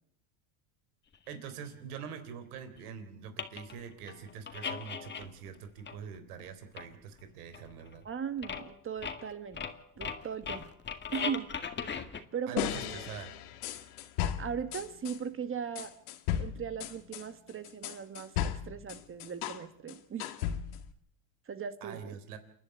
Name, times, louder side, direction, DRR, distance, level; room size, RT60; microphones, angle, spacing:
sound 1, 1.3-1.4 2.8-2.9 3.4-3.8 4.1-5.6 5.9-6.5 6.8-6.9 7.2-7.3 7.5-8.1 8.4-8.7 9.0-12.2, left 6 dB, 25° left, 2.0 m, -38 dB
voice 1, 1.3-8.1 12.5-13.3 21.8-22.4, right 7 dB, 90° right, 9 dB, 3.8 m, -44 dB
voice 2, 8.0-9.6 10.0-10.7 11.1-11.5 12.3-13.1 14.4-15.9 16.4-20.3 21.5-22.4, right 7 dB, 30° right, 11 dB, 1.7 m, -38 dB
sound 2, 12.6-15.2 15.8-19.6 19.9-20.9, left 10 dB, 80° left, 2.1 m, -35 dB
28.5 x 11.5 x 9.2 m, 0.69 s
supercardioid pair, 115°, 44 cm